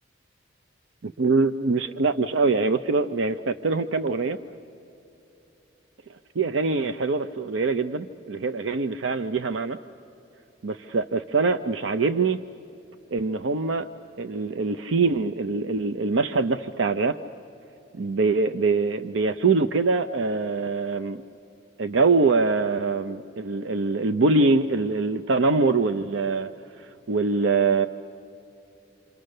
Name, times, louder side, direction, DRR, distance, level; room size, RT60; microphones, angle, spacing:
voice 1, 1.0-4.4 6.4-9.8 10.6-12.4 13.1-13.9 14.2-17.2 17.9-21.2 21.8-27.9, right 3 dB, 75° right, 10 dB, 0.6 m, -24 dB
28.0 x 26.5 x 6.5 m, 2.8 s
head